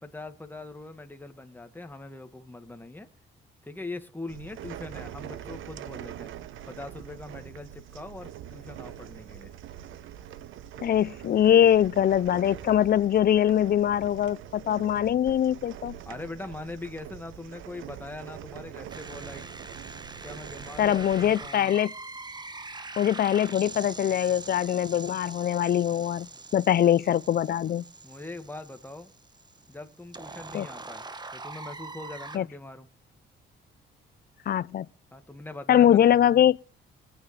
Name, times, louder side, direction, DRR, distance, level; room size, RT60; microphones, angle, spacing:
voice 1, 0.0-3.1 3.6-6.3 6.7-9.5 16.1-19.5 20.2-21.7 28.0-29.1 29.7-31.0 31.3-32.9 35.1-36.2, left 2 dB, 10° left, 1.8 m, -41 dB
sound 1, 4.3-21.5, right 11 dB, 80° right, 0.9 m, -44 dB
voice 2, 10.8-16.0 20.8-21.9 23.0-26.3 26.5-27.8 30.5-30.7 32.3-32.4 34.5-34.9 35.7-36.6, left 10 dB, 50° left, 0.5 m, -22 dB
sound 2, 18.9-32.4, right 3 dB, 20° right, 1.3 m, -43 dB
22.5 x 9.3 x 3.3 m
cardioid pair, 90°, 20 cm